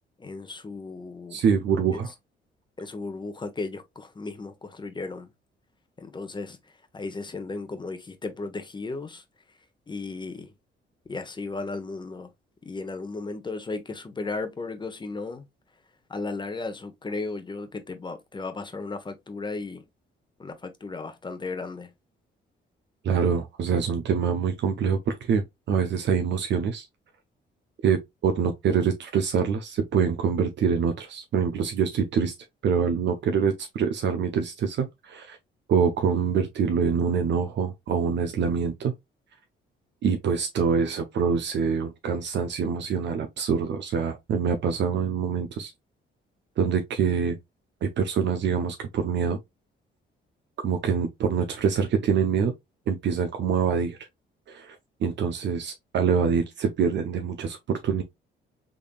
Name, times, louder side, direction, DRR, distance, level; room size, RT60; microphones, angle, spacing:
voice 1, 0.2-1.4 1.9-2.0 2.8-5.3 6.0-9.2 9.9-10.5 11.0-12.3 12.6-15.5 16.1-19.8 20.4-21.9, left 3 dB, 25° left, 0.9 m, -35 dB
voice 2, 1.3-2.1 23.0-26.9 27.8-32.3 32.6-35.4 35.7-38.9 40.0-45.7 46.6-47.4 47.8-49.4 50.6-52.5 52.9-54.0 54.5-58.0, right 6 dB, 65° right, 0.7 m, -25 dB
3.8 x 3.4 x 2.4 m
cardioid pair, 90°, 20 cm